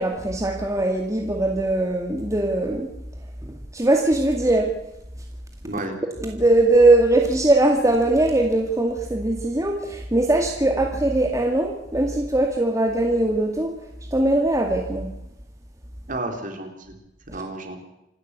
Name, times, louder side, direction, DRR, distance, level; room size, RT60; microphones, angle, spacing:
voice 1, 0.0-2.9 3.4-4.7 6.2-13.8 14.1-15.1, right 2 dB, 20° right, 2 dB, 2.2 m, -20 dB
voice 2, 5.6-6.0 16.1-17.0 17.3-17.9, right 2 dB, 50° right, 4 dB, 4.0 m, -32 dB
26.5 x 12.0 x 8.3 m, 0.87 s
head